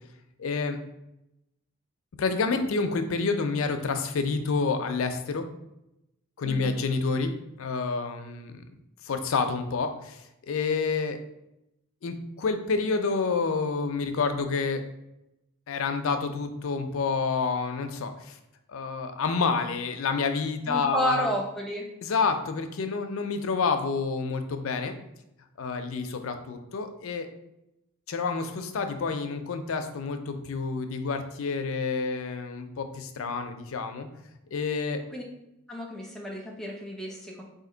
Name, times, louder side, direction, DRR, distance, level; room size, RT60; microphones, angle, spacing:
voice 1, 0.4-0.8 2.2-5.4 6.4-7.3 7.6-8.6 9.0-10.2 10.5-11.2 12.0-14.8 15.7-18.4 18.7-21.3 22.0-24.9 25.6-27.3 28.1-34.1 34.5-35.0, left 4 dB, 65° left, 7 dB, 0.4 m, -28 dB
voice 2, 6.4-6.8 20.7-21.9 35.1-35.2 35.7-37.4, equal, ahead, -2 dB, 0.7 m, -31 dB
4.2 x 2.6 x 3.8 m, 0.87 s
head